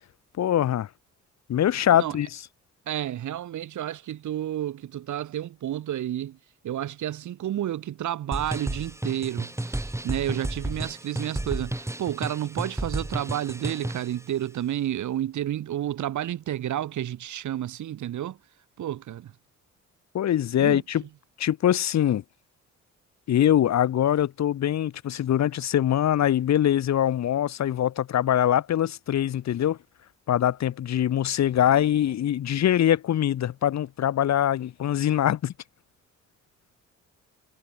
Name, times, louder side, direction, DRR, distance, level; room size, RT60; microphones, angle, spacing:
voice 1, 0.4-0.9 1.5-2.3 20.1-21.0 21.4-22.2 23.3-29.8 30.3-35.5, left 11 dB, 60° left, 1.7 m, -23 dB
voice 2, 2.9-6.4 6.6-18.4 18.8-19.3 20.6-21.1, right 12 dB, 75° right, 5.1 m, -31 dB
sound 1, 8.3-14.1, right 1 dB, 10° right, 4.8 m, -32 dB
cardioid pair, 90°, 30 cm